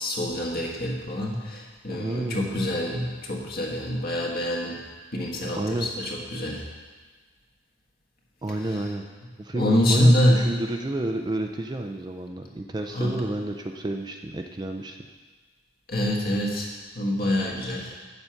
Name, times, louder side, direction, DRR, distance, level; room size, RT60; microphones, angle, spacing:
voice 1, 0.0-4.8 5.1-6.6 9.5-10.4 12.9-13.2 15.9-18.0, left 1 dB, 45° left, -2 dB, 1.5 m, -25 dB
voice 2, 1.9-2.6 5.5-5.9 8.4-9.0 9.4-15.0, right 1 dB, 20° right, 4 dB, 0.4 m, -30 dB
8.0 x 6.9 x 5.8 m, 1.4 s
head